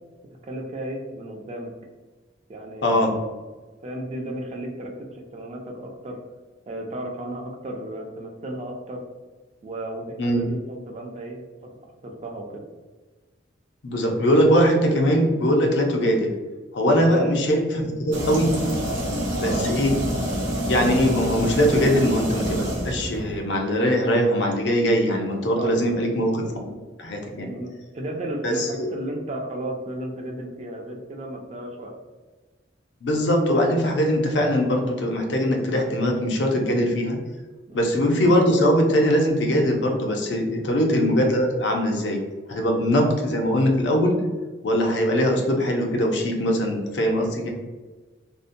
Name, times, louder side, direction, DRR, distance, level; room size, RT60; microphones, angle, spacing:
voice 1, 0.4-1.7 2.5-3.2 3.8-6.2 6.7-9.0 9.6-11.7 12.0-12.6 17.1-17.4 19.4-19.7 25.6-25.7 27.4-32.0 37.7-38.0 40.6-40.9 42.7-43.1, right 1 dB, 35° right, 1 dB, 0.4 m, -34 dB
voice 2, 13.8-16.3 16.7-18.5 19.4-20.2 20.7-26.7 27.0-27.5 28.4-28.9 33.0-37.2 37.7-42.2 42.5-44.2 44.6-47.5, equal, 65° left, 2 dB, 0.5 m, -21 dB
sound 1, 18.1-23.4, equal, 85° right, 0.7 m, -27 dB
2.6 x 2.1 x 2.5 m, 1.3 s
head